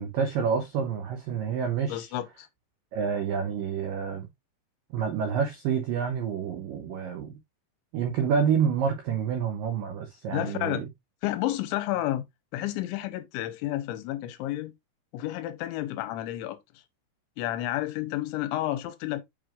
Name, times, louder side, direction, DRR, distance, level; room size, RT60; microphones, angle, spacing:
voice 1, 0.0-2.1 2.9-4.3 4.9-7.4 7.9-10.9, right 7 dB, 80° right, 1.9 m, -28 dB
voice 2, 1.9-2.5 10.3-10.8 11.2-12.2 12.5-14.7 15.1-16.6 17.4-19.2, left 14 dB, 90° left, 3.1 m, -31 dB
6.9 x 6.1 x 2.5 m
omnidirectional pair, 5.3 m